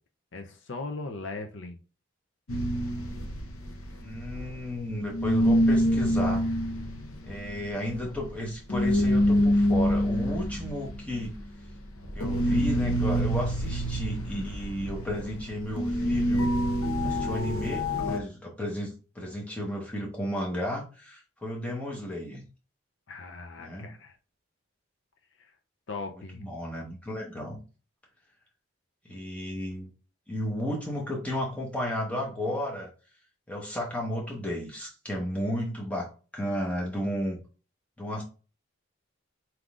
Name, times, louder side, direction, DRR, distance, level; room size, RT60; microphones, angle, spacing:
voice 1, 0.3-1.8 23.1-24.2 25.4-25.5 25.9-26.5, left 3 dB, 60° left, 4 dB, 0.6 m, -38 dB
sound 1, 2.5-4.9 5.1-18.2, equal, 90° left, 0.8 m, -27 dB
voice 2, 4.0-6.4 7.2-11.4 12.1-16.5 17.0-22.4 23.6-23.9 26.4-27.6 29.0-29.9 30.3-32.9 33.5-37.4 38.0-38.2, equal, 5° left, -2 dB, 1.1 m, -33 dB
4.5 x 3.7 x 2.5 m, 0.35 s
head